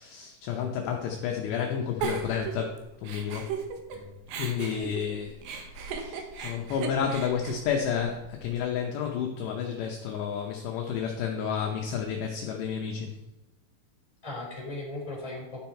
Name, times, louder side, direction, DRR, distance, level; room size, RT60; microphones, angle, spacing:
voice 1, 0.0-2.8 3.0-3.5 4.4-5.4 5.7-13.2, left 7 dB, 75° left, 1 dB, 2.6 m, -31 dB
Giggle, 2.0-4.0 4.3-8.5, right 6 dB, 80° right, 2.0 m, -36 dB
voice 2, 14.2-15.6, left 2 dB, 10° left, -3 dB, 2.6 m, -38 dB
12.0 x 7.4 x 4.5 m, 0.97 s
omnidirectional pair, 5.8 m